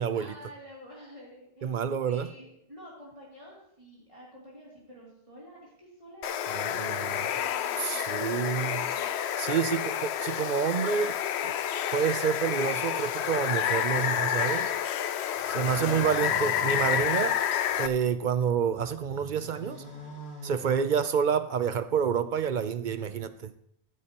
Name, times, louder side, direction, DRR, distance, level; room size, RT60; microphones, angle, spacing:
voice 1, 0.1-6.4 6.7-9.1, equal, 30° right, -7 dB, 2.8 m, -49 dB
voice 2, 1.6-2.3 6.8-7.2 7.8-8.8 9.4-11.2 11.4-11.5 11.9-14.7 15.5-17.4 17.8-19.8 20.4-23.5, right 7 dB, 55° right, 12 dB, 0.6 m, -28 dB
Water, 6.2-17.9, left 10 dB, 90° left, 0.9 m, -29 dB
sound 1, 15.3-18.0 18.5-21.3, equal, 70° left, 3.5 m, -46 dB
14.0 x 9.6 x 2.9 m, 0.72 s
omnidirectional pair, 1.1 m